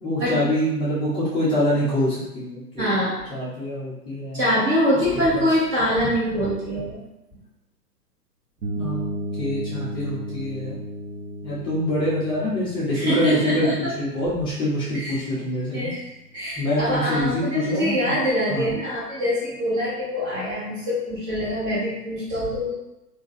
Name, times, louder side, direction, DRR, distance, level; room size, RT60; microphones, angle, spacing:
voice 1, 0.0-2.9 3.3-4.5 5.3-5.5 8.7-9.0 9.4-10.8 11.4-15.9 16.6-18.1 18.5-18.7, left 1 dB, 10° left, -9 dB, 0.7 m, -25 dB
voice 2, 2.8-3.2 4.3-7.0 13.0-13.9 14.9-15.2 15.7-16.1 16.3-22.7, equal, 25° right, -8 dB, 1.4 m, -24 dB
sound 1, 8.6-16.3, right 1 dB, 65° right, 1.0 m, -35 dB
3.8 x 2.7 x 2.6 m, 0.94 s
figure-of-eight pair, 120°, 48 cm